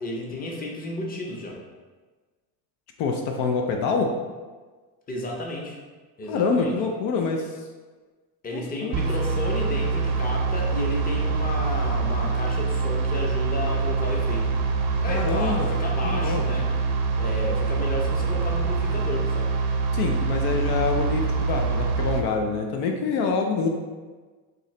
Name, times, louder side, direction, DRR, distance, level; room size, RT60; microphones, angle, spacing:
voice 1, 0.0-1.6 5.1-5.8 6.2-6.7 8.4-14.5 15.0-16.7 17.2-19.5, left 1 dB, 20° left, -1 dB, 0.7 m, -32 dB
voice 2, 3.0-4.2 6.3-7.6 8.5-9.0 15.1-15.8 16.0-16.4 19.9-23.7, left 4 dB, 65° left, 3 dB, 0.6 m, -26 dB
sound 1, 8.9-22.2, right 4 dB, 65° right, 0.6 m, -25 dB
3.8 x 2.8 x 3.2 m, 1.4 s
supercardioid pair, 100°, 44 cm